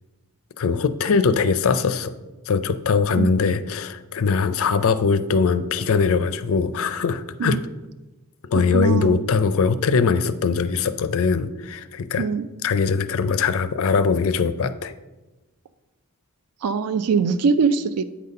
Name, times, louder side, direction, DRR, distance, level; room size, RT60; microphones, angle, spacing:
voice 1, 0.6-2.1 2.5-7.6 8.5-12.3 12.6-14.9, left 5 dB, 65° left, 13 dB, 0.4 m, -21 dB
voice 2, 8.7-9.2 12.2-12.5 16.6-18.0, right 5 dB, 90° right, 11 dB, 0.4 m, -22 dB
8.4 x 4.1 x 5.3 m, 1.1 s
head